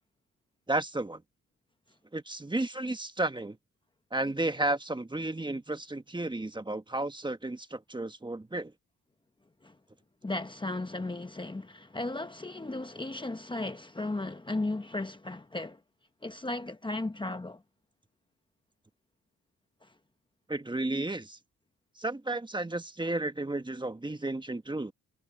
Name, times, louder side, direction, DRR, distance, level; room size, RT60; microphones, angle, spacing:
voice 1, 0.7-1.2 2.1-3.6 4.1-8.7 20.5-21.4 22.0-24.9, right 2 dB, 15° right, 1.4 m, -33 dB
voice 2, 10.2-15.8 16.2-17.6 19.8-19.9, left 2 dB, 15° left, 1.2 m, -35 dB
cardioid pair, 75°, 32 cm